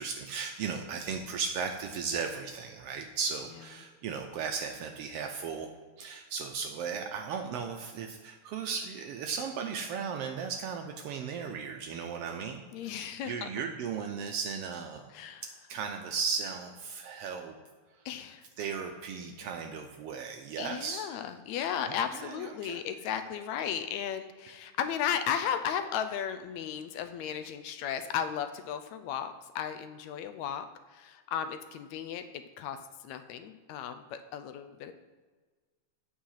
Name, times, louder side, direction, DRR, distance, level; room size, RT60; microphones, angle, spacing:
voice 1, 0.0-5.7 6.0-15.1 15.7-17.5 17.9-18.0 18.6-21.1 21.8-22.8, right 6 dB, 80° right, 4 dB, 1.4 m, -36 dB
voice 2, 12.7-13.5 15.1-15.4 18.1-18.5 20.6-30.7 30.9-32.8 33.0-34.9, left 8 dB, 80° left, 9 dB, 1.8 m, -35 dB
8.9 x 5.6 x 5.6 m, 1.4 s
omnidirectional pair, 3.3 m